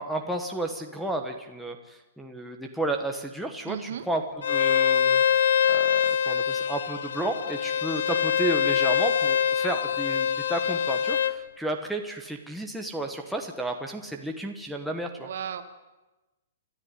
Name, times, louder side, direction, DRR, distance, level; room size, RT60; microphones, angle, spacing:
voice 1, 0.0-4.2 4.5-15.3, right 2 dB, ahead, 0 dB, 1.1 m, -32 dB
voice 2, 3.6-4.1 15.2-15.6, right 8 dB, 50° right, 8 dB, 2.0 m, -35 dB
Bowed string instrument, 4.4-11.3, left 8 dB, 75° left, 1.0 m, -24 dB
28.5 x 13.0 x 9.6 m, 1.1 s
hypercardioid pair, 180°, 0 cm